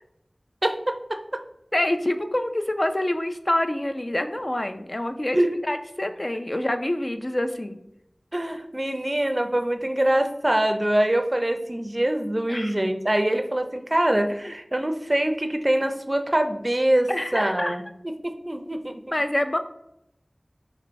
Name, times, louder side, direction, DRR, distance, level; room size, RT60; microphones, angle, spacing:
voice 1, 0.6-1.4 5.3-5.5 8.3-17.8 18.2-19.0, right 1 dB, 35° right, 6 dB, 0.4 m, -24 dB
voice 2, 1.7-7.8 12.5-12.8 14.4-14.5 17.1-17.8 19.1-19.6, left 1 dB, 40° left, 7 dB, 0.3 m, -26 dB
4.3 x 3.0 x 2.6 m, 0.79 s
wide cardioid pair, 50°, 0 cm